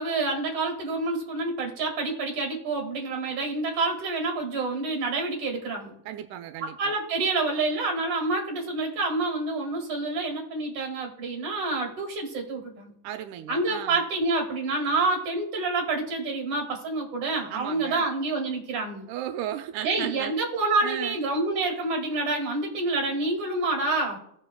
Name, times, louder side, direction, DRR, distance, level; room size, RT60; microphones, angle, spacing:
voice 1, 0.0-5.9 6.6-12.9 13.5-19.1 19.8-24.2, right 3 dB, 50° right, 2 dB, 2.9 m, -28 dB
voice 2, 6.1-6.9 13.0-14.0 17.5-18.1 19.1-20.3 20.8-21.2, right 11 dB, 90° right, 7 dB, 2.1 m, -35 dB
18.0 x 6.3 x 2.2 m, 0.72 s
omnidirectional pair, 3.5 m